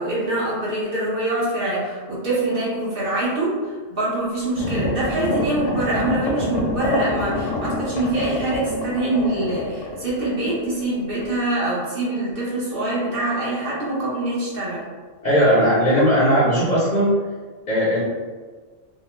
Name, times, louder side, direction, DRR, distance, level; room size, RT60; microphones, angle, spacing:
voice 1, 0.0-14.9, right 2 dB, 50° right, -8 dB, 1.0 m, -24 dB
sound 1, 4.6-10.9 11.2-11.3, left 2 dB, 75° left, 0.9 m, -27 dB
voice 2, 15.2-17.1 17.7-18.0, equal, 45° left, -8 dB, 0.7 m, -17 dB
2.8 x 2.0 x 3.1 m, 1.4 s
omnidirectional pair, 1.3 m